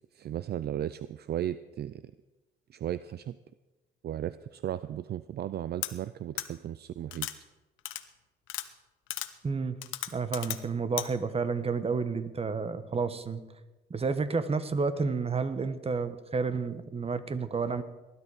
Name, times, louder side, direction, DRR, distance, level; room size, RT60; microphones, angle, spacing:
voice 1, 0.2-1.9 2.7-3.4 4.0-7.3, right 11 dB, 55° right, 15 dB, 0.5 m, -35 dB
sound 1, 5.8-5.9 6.4-6.5 7.1-7.3 7.8-8.0 8.5-8.7 9.1-9.3 9.8-10.6 11.0-11.1, left 14 dB, 85° left, 0.9 m, -34 dB
voice 2, 9.4-9.8 10.1-13.4 13.9-17.8, right 4 dB, 30° right, 12 dB, 1.2 m, -30 dB
19.5 x 11.5 x 4.9 m, 1.1 s
cardioid pair, 90°, 20 cm